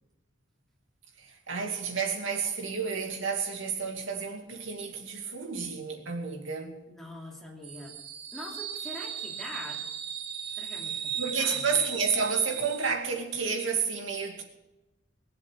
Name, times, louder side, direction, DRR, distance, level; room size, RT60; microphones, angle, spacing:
voice 1, 1.2-6.8 11.2-14.4, right 5 dB, 85° right, 2.5 m, -31 dB
voice 2, 6.9-7.9 8.3-9.8 10.5-11.7, left 1 dB, ahead, 2.8 m, -43 dB
sound 1, 7.6-12.9, right 8 dB, 60° right, 1.7 m, -37 dB
21.0 x 7.7 x 6.8 m
head